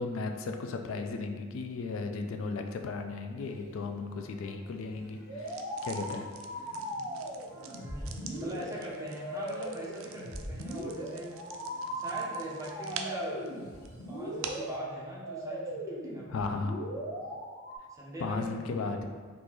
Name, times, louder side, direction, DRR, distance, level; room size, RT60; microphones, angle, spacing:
voice 1, 0.0-6.3 16.3-16.8 18.2-19.0, left 3 dB, 70° left, 6 dB, 0.3 m, -35 dB
sound 1, 3.3-14.4, equal, 50° left, 0.9 m, -56 dB
sound 2, 5.3-17.8, right 1 dB, 5° left, 1.4 m, -39 dB
sound 3, 5.4-14.8, right 6 dB, 70° right, 0.3 m, -47 dB
voice 2, 7.5-11.4 11.9-13.5 14.1-16.6 17.9-18.9, right 1 dB, 15° right, -5 dB, 0.7 m, -41 dB
3.7 x 2.5 x 3.0 m, 1.5 s
head